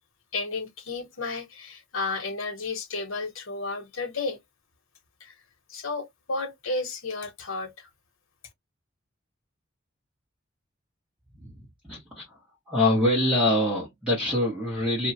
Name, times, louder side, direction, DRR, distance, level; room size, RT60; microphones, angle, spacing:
voice 1, 0.3-4.4 5.2-5.3 5.7-7.9, left 3 dB, 85° left, 1.0 m, -32 dB
voice 2, 11.4-12.4 12.7-15.1, left 1 dB, 5° right, 1.4 m, -25 dB
2.8 x 2.4 x 2.7 m
head